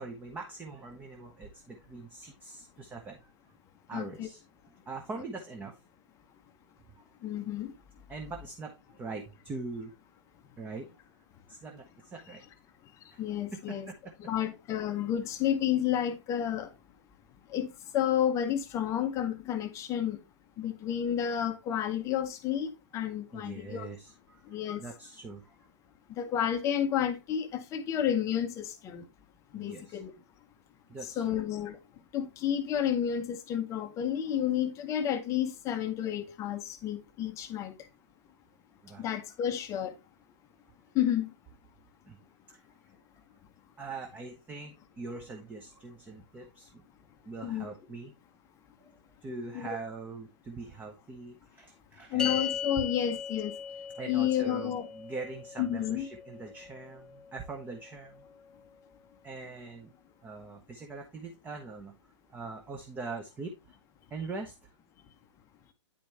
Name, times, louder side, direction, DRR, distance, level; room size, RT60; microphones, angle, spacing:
voice 1, 0.0-3.3 3.9-4.4 4.9-5.8 8.1-9.9 10.6-10.9 11.5-12.4 13.1-13.2 13.7-14.1 23.3-25.6 29.5-30.0 30.9-31.4 38.8-39.1 42.1-42.2 42.5-42.6 43.8-46.8 47.2-48.1 48.8-52.5 54.0-58.2 59.2-59.9 60.2-61.9 62.3-63.8 64.1-64.7, right 3 dB, 10° right, 0.9 m, -42 dB
voice 2, 3.9-4.3 7.2-7.7 12.3-12.4 13.2-13.9 14.2-16.7 17.5-20.2 20.6-23.9 24.5-24.8 26.2-29.0 29.5-30.1 31.0-31.8 32.1-37.8 39.0-39.9 40.9-41.3 47.4-47.7 49.5-49.8 52.1-53.5 54.1-54.9 55.6-56.1, left 10 dB, 20° left, 0.8 m, -31 dB
sound 1, 52.2-58.7, left 7 dB, 5° left, 0.3 m, -39 dB
9.4 x 5.0 x 3.4 m
figure-of-eight pair, 130°, 15 cm